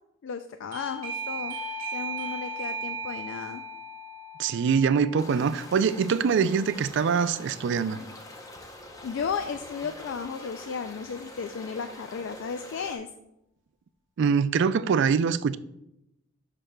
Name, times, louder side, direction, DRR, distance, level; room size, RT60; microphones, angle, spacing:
voice 1, 0.2-1.6 1.9-3.6 9.0-13.1, left 6 dB, 65° left, 0.3 m, -34 dB
Doorbell, 0.7-7.2, right 2 dB, 40° right, 1.5 m, -37 dB
voice 2, 4.4-8.0 14.2-15.6, right 6 dB, 60° right, 0.3 m, -24 dB
sound 1, 5.2-13.0, left 1 dB, 15° left, 0.7 m, -45 dB
11.5 x 5.0 x 2.2 m
head